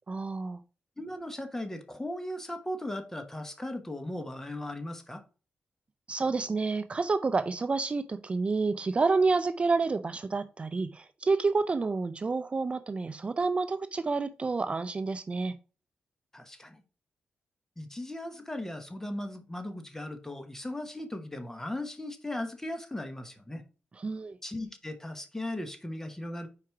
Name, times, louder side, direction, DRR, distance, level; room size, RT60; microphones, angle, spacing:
voice 1, 0.1-0.6 6.1-15.5 24.0-24.4, right 4 dB, 35° right, 0.4 m, -29 dB
voice 2, 1.0-5.2 16.3-16.8 17.8-23.6 24.4-26.5, left 1 dB, 15° left, 1.1 m, -37 dB
4.8 x 4.3 x 4.7 m
cardioid pair, 75°, 3 cm